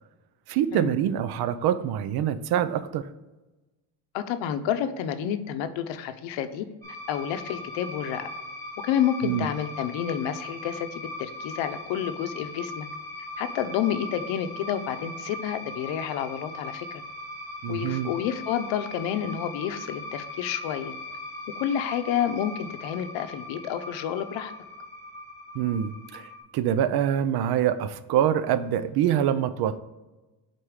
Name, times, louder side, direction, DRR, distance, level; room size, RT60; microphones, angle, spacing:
voice 1, 0.5-3.1 9.2-9.5 17.6-18.1 25.5-26.3 26.5-29.8, right 10 dB, 60° right, 13 dB, 0.5 m, -25 dB
voice 2, 4.1-6.7 7.1-8.3 8.8-12.9 13.4-16.9 17.7-20.9 21.6-24.5, left 9 dB, 80° left, 10 dB, 0.7 m, -29 dB
sound 1, 6.8-26.4, left 1 dB, 5° left, 1.9 m, -39 dB
4.9 x 4.3 x 4.7 m, 1.1 s
cardioid pair, 145°, 44 cm